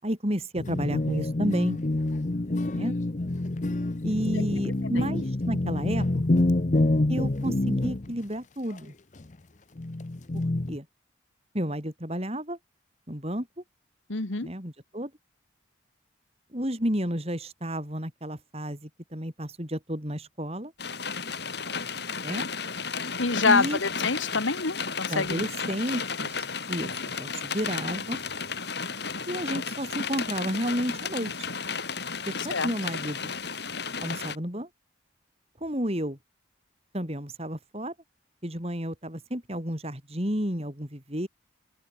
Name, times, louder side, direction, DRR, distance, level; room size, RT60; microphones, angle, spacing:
voice 1, 0.0-1.8 2.7-2.9 4.0-6.0 6.3-6.5 7.1-8.9 10.3-10.4 10.7-10.9 11.5-12.6 13.1-13.5 14.4-15.1 16.5-20.7 22.2-22.4 23.4-23.8 25.1-28.2 29.3-31.5 32.4-33.3 34.0-34.7 35.6-36.2 36.9-37.9 38.4-41.3, equal, 30° right, 5.5 m, -31 dB
sound 1, 0.6-8.2 9.2-9.3 9.8-10.8, left 2 dB, 40° left, 0.8 m, -27 dB
voice 2, 14.1-14.5 23.2-25.4 32.5-32.7, left 4 dB, 75° left, 1.8 m, -26 dB
sound 2, 20.8-34.4, left 5 dB, 55° left, 4.9 m, -33 dB
open air
head